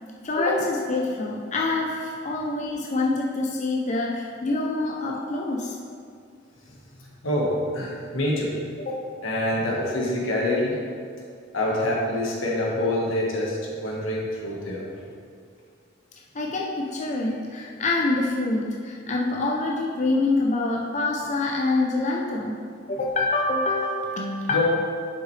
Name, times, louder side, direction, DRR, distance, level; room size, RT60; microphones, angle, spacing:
voice 1, 0.2-5.8 8.8-9.1 16.3-22.6 22.9-24.6, left 2 dB, 35° left, -2 dB, 0.5 m, -26 dB
voice 2, 7.0-8.5 9.2-10.8 11.5-15.1 24.5-24.6, left 1 dB, 90° left, -3 dB, 1.5 m, -26 dB
7.5 x 5.8 x 3.3 m, 2.2 s
head